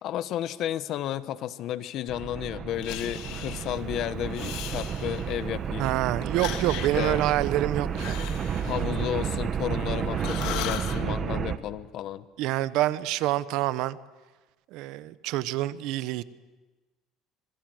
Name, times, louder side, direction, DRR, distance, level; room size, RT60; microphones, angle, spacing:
voice 1, 0.0-5.9 7.0-7.2 8.6-12.2, left 11 dB, 60° left, 13 dB, 1.1 m, -32 dB
sound 1, 2.1-11.6, right 7 dB, 40° right, 1.4 m, -31 dB
Breathing, 2.8-3.8 4.3-5.5 6.2-9.8 10.1-11.0, left 13 dB, 80° left, 1.8 m, -39 dB
voice 2, 5.8-8.3 12.4-14.0 14.7-16.2, right 15 dB, 75° right, 15 dB, 1.0 m, -27 dB
26.5 x 22.5 x 7.8 m, 1.2 s
cardioid pair, 120°, 0 cm